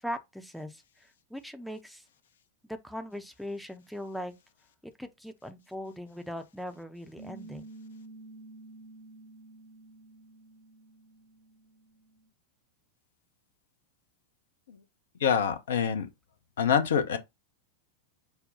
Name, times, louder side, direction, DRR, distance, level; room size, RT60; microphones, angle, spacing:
voice 1, 0.0-2.0 2.7-4.3 4.8-7.7, equal, ahead, 0.6 m, -40 dB
Piano, 7.2-12.3, right 2 dB, 35° right, 1.0 m, -50 dB
voice 2, 15.2-16.1 16.6-17.2, left 7 dB, 60° left, 0.7 m, -26 dB
5.5 x 2.2 x 3.8 m
figure-of-eight pair, 90°, 0 cm